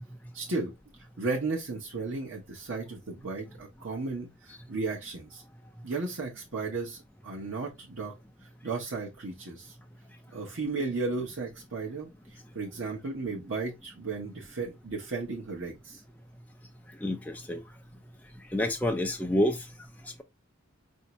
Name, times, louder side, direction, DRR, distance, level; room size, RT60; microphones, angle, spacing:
voice 1, 0.3-0.7 1.2-5.4 5.8-7.0 7.2-8.1 8.6-9.8 10.3-16.0, right 3 dB, 70° right, 0.9 m, -34 dB
voice 2, 17.0-17.6 18.5-19.6, left 1 dB, 10° left, 0.4 m, -27 dB
4.4 x 2.7 x 2.9 m
head